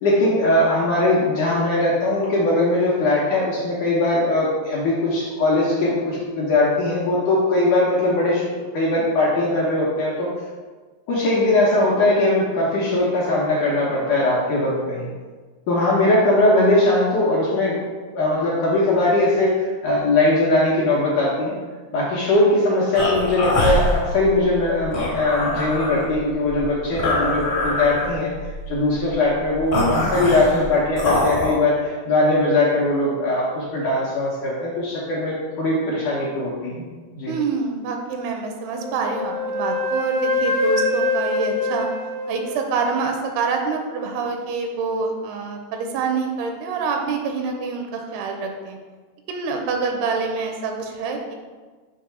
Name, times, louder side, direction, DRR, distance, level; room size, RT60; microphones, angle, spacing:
voice 1, 0.0-10.3 11.1-15.1 15.7-17.8 18.1-21.5 21.9-28.3 28.7-36.9 37.2-37.3, left 2 dB, 70° left, -5 dB, 2.0 m, -20 dB
sound 1, 22.9-31.5, left 1 dB, 45° left, 1.3 m, -24 dB
voice 2, 37.3-41.9 42.3-48.8 49.3-51.4, right 4 dB, 85° right, 3 dB, 2.6 m, -26 dB
Wind instrument woodwind instrument, 38.8-43.0, left 2 dB, 85° left, 1.5 m, -24 dB
6.7 x 3.5 x 5.6 m, 1.4 s
omnidirectional pair, 4.6 m